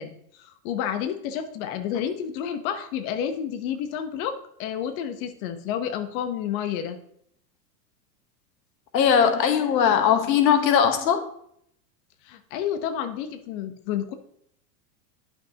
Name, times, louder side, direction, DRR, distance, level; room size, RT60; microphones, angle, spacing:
voice 1, 0.0-7.0 12.2-14.1, left 9 dB, 55° left, 9 dB, 1.0 m, -30 dB
voice 2, 8.9-11.2, left 7 dB, 85° left, 7 dB, 1.2 m, -20 dB
11.0 x 5.5 x 2.9 m, 0.70 s
hypercardioid pair, 115°, 50 cm